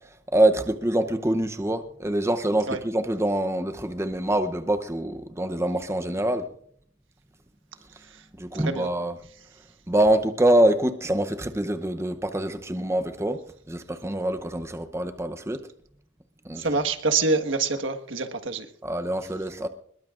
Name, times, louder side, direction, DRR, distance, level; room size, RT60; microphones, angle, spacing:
voice 1, 0.3-6.5 8.4-9.2 9.9-13.4 13.7-15.7 16.4-16.7 18.8-19.7, right 1 dB, 15° right, 0.7 m, -25 dB
voice 2, 8.5-8.9 16.5-18.7, right 3 dB, 75° right, 1.5 m, -26 dB
25.0 x 21.0 x 2.5 m
head